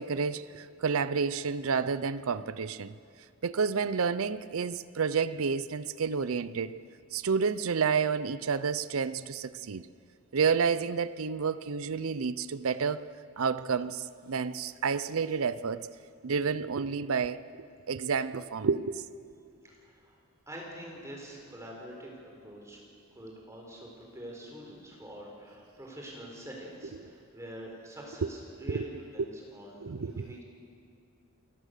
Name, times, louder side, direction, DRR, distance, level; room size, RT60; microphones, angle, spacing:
voice 1, 0.0-2.9 3.4-6.8 7.1-9.9 10.3-13.0 13.4-15.9 16.2-17.4 17.9-19.0 28.2-28.3 28.6-28.9 29.8-30.4, right 5 dB, 75° right, 0.5 m, -30 dB
voice 2, 19.6-20.2 20.5-22.8 23.1-30.4, right 1 dB, 15° right, 4.2 m, -45 dB
28.5 x 17.5 x 6.7 m
head